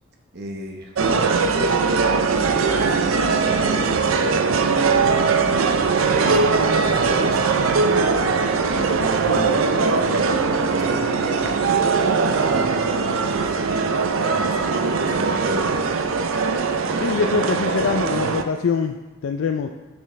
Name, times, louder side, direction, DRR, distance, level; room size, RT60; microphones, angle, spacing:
voice 1, 0.3-4.7 5.1-8.1 8.6-10.4 10.7-12.0 12.3-13.6 14.1-15.7, right 1 dB, 50° right, 2 dB, 1.0 m, -34 dB
sound 1, 1.0-18.4, right 4 dB, 80° right, 0.5 m, -20 dB
voice 2, 17.0-19.0 19.2-19.7, left 5 dB, 75° left, 5 dB, 0.4 m, -23 dB
8.9 x 6.1 x 3.2 m, 1.2 s
head